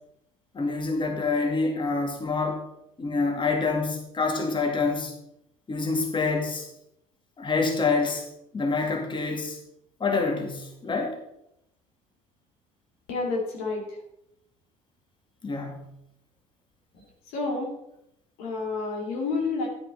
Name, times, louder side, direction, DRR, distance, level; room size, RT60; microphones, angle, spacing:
voice 1, 0.5-2.6 3.0-5.1 5.7-6.7 7.4-8.3 8.5-9.6 10.0-11.2 15.4-15.8, left 4 dB, 30° left, 2 dB, 2.3 m, -26 dB
voice 2, 13.1-13.8 16.9-17.0 17.3-17.7 18.4-19.7, left 3 dB, 70° left, 0 dB, 2.6 m, -29 dB
9.8 x 9.2 x 4.1 m, 0.79 s
hypercardioid pair, 65°, 17 cm